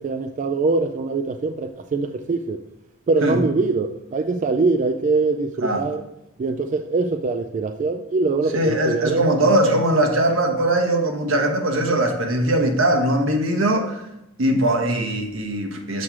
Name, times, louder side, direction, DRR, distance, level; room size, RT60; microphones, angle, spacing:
voice 1, 0.0-2.6 3.1-6.0 6.4-9.3, right 3 dB, 40° right, 6 dB, 0.3 m, -23 dB
voice 2, 8.5-14.0 14.4-16.0, right 1 dB, 80° right, 4 dB, 1.1 m, -20 dB
7.2 x 3.2 x 5.9 m, 0.87 s
head